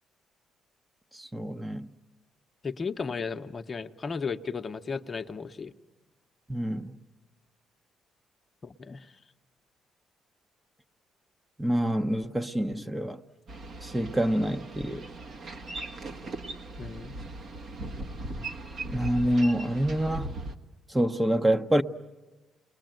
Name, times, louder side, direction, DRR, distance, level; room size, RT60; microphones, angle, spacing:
voice 1, 1.1-1.9 6.5-7.0 11.6-13.2 13.8-15.1 18.9-20.3 20.9-21.8, right 1 dB, 15° right, 0.9 m, -27 dB
voice 2, 2.6-5.7 8.6-9.1 16.8-17.1, left 5 dB, 40° left, 0.9 m, -35 dB
Boat Water vehicle, 13.5-20.5, right 2 dB, 55° right, 1.6 m, -39 dB
29.5 x 21.0 x 9.2 m
supercardioid pair, 60°, 0 cm